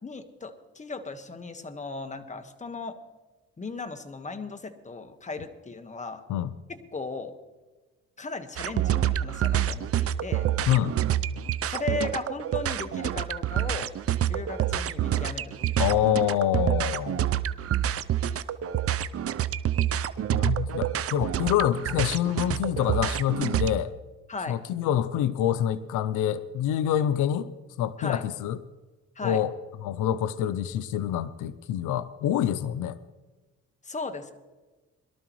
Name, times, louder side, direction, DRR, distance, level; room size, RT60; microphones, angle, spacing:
voice 1, 0.0-3.0 3.6-6.2 6.7-7.4 8.2-10.5 11.7-13.9 14.3-15.9 24.3-24.6 28.0-28.2 29.1-29.4 33.8-34.3, left 3 dB, 25° left, 7 dB, 1.4 m, -36 dB
sound 1, 8.6-23.7, right 11 dB, 50° right, 0.6 m, -27 dB
voice 2, 15.8-17.3 20.3-23.9 24.5-27.5 27.8-28.6 29.2-29.5 29.8-33.0, left 11 dB, 90° left, 14 dB, 0.6 m, -26 dB
22.0 x 12.5 x 3.1 m, 1.2 s
cardioid pair, 90°, 30 cm